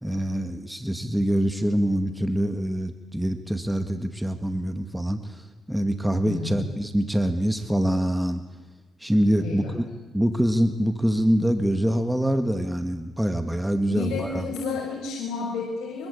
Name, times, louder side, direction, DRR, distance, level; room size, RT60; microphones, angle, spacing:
voice 1, 0.0-5.4 5.7-8.4 9.0-9.8 10.1-14.4, equal, 5° right, 7 dB, 2.1 m, -25 dB
voice 2, 6.3-6.7 9.4-9.8 13.9-16.1, left 4 dB, 80° left, -2 dB, 6.1 m, -31 dB
25.0 x 23.5 x 8.6 m, 1.2 s
cardioid pair, 90°, 0 cm